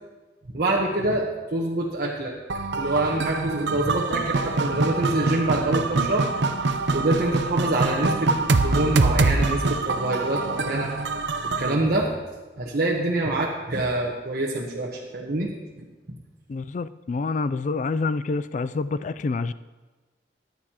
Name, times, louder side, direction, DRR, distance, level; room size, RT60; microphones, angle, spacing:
voice 1, 0.5-2.3 2.8-6.3 6.9-10.9 11.6-12.1 12.6-15.5, right 2 dB, 55° right, -3 dB, 1.1 m, -25 dB
sound 1, 2.5-11.7, right 3 dB, 85° right, 0.7 m, -24 dB
voice 2, 16.5-19.5, left 3 dB, 45° left, 14 dB, 0.3 m, -27 dB
14.0 x 10.5 x 2.9 m, 1.2 s
head